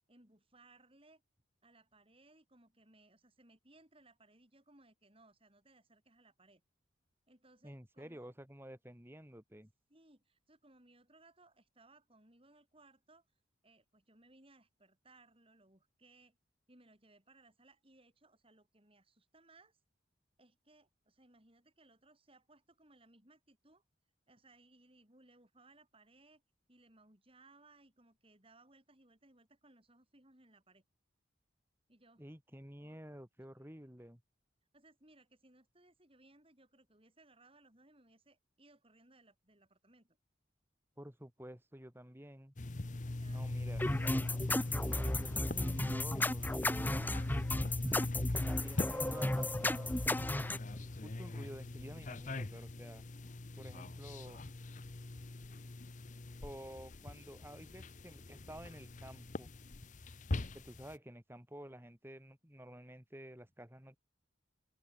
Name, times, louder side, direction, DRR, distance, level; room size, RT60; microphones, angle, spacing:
voice 1, 0.1-1.2 1.6-6.6 7.3-8.4 9.9-13.3 13.6-16.4 16.7-19.8 20.4-23.8 24.3-26.4 26.7-30.8 31.9-32.3 32.8-33.0 33.7-34.1 34.7-40.2 43.0-43.5 47.5-48.1, right 2 dB, 30° right, 7.5 m, -65 dB
voice 2, 7.6-9.7 32.2-34.2 41.0-42.5 43.2-43.8 44.7-47.2 48.3-49.9 50.7-53.0 53.6-54.5 56.4-59.5 60.5-64.0, equal, 10° right, 3.3 m, -51 dB
sound 1, 42.6-61.0, left 2 dB, 40° left, 0.8 m, -41 dB
sound 2, 43.8-50.6, left 1 dB, 10° left, 0.9 m, -34 dB
open air
head